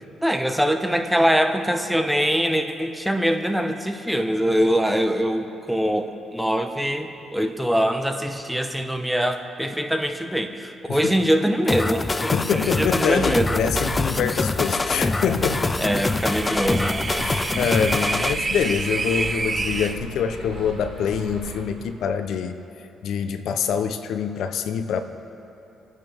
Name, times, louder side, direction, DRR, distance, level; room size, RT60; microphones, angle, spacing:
voice 1, 0.2-13.6 15.8-17.0, equal, ahead, 6 dB, 1.0 m, -23 dB
sound 1, 11.7-18.3, left 3 dB, 20° left, 0.3 m, -25 dB
voice 2, 12.3-15.8 17.2-22.5 23.0-25.0, left 7 dB, 75° left, 9 dB, 0.7 m, -25 dB
sound 2, 12.5-21.6, right 2 dB, 50° right, 3.4 m, -36 dB
sound 3, 15.7-20.0, right 3 dB, 30° right, 0.6 m, -28 dB
26.5 x 9.3 x 3.5 m, 2.8 s
cardioid pair, 90°, 0 cm